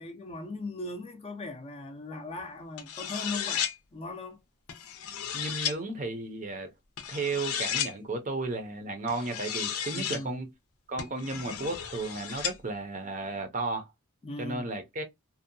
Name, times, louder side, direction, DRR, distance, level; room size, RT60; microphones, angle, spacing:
voice 1, 0.0-4.4 9.9-10.4 14.2-14.7, left 2 dB, 25° left, 0.4 m, -39 dB
sound 1, 2.8-3.7 4.7-5.7 7.0-7.9 9.1-10.2 11.0-12.5, left 8 dB, 85° left, 0.6 m, -34 dB
voice 2, 5.3-6.7 7.1-10.5 10.9-13.9 14.4-15.0, right 3 dB, 35° right, 0.5 m, -34 dB
2.6 x 2.1 x 2.6 m
head